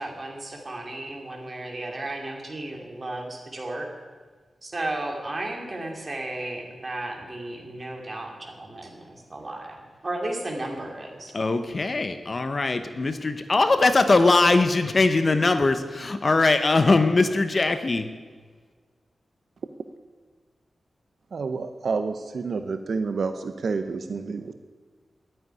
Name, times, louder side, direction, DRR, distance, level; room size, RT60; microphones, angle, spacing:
voice 1, 0.0-3.9 4.6-11.3, right 2 dB, 30° right, 1 dB, 2.6 m, -34 dB
voice 2, 11.3-18.1, left 3 dB, 35° left, 9 dB, 0.9 m, -21 dB
voice 3, 21.3-24.5, right 4 dB, 65° right, 8 dB, 0.7 m, -29 dB
11.0 x 9.3 x 9.7 m, 1.5 s
wide cardioid pair, 140°, 0 cm